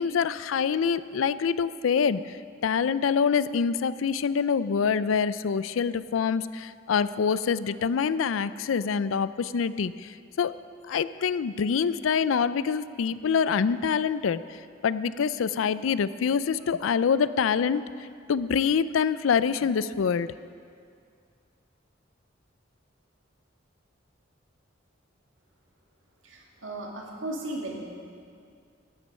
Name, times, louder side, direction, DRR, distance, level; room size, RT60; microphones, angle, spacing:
voice 1, 0.0-2.2 2.6-9.9 10.4-10.5 10.9-14.4 14.8-17.9 18.3-20.3, left 6 dB, 90° left, 15 dB, 0.4 m, -25 dB
voice 2, 26.2-27.9, right 1 dB, 80° right, -1 dB, 2.2 m, -36 dB
14.0 x 10.0 x 5.5 m, 2.3 s
head